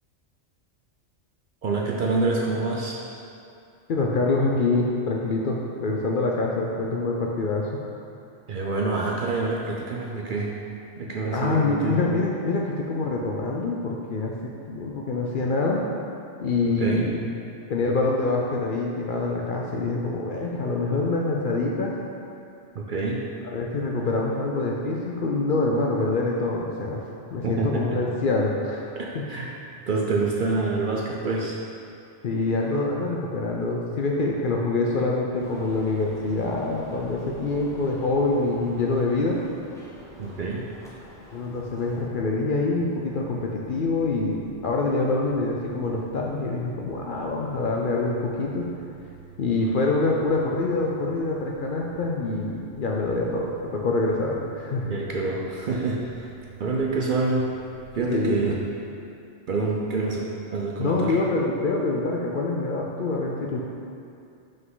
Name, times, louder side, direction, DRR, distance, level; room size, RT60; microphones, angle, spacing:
voice 1, 1.6-3.0 8.5-10.5 11.0-12.0 16.8-17.1 22.7-23.2 27.4-28.0 29.0-29.6 29.9-31.6 40.2-40.7 54.9-56.3 56.6-57.5 57.9-58.6 59.5-61.2, right 3 dB, 55° right, -2 dB, 0.6 m, -26 dB
voice 2, 3.9-7.7 11.3-15.8 16.4-17.1 17.7-22.0 23.5-27.0 27.3-29.2 32.2-39.4 41.3-48.7 49.4-54.9 56.6-56.7 58.1-58.4 60.8-63.6, left 3 dB, 60° left, -1 dB, 0.6 m, -25 dB
sound 1, 35.4-42.1, left 1 dB, 5° left, 0.8 m, -46 dB
sound 2, 41.5-58.7, right 8 dB, 85° right, 1.0 m, -48 dB
5.8 x 5.2 x 3.9 m, 2.5 s
omnidirectional pair, 1.3 m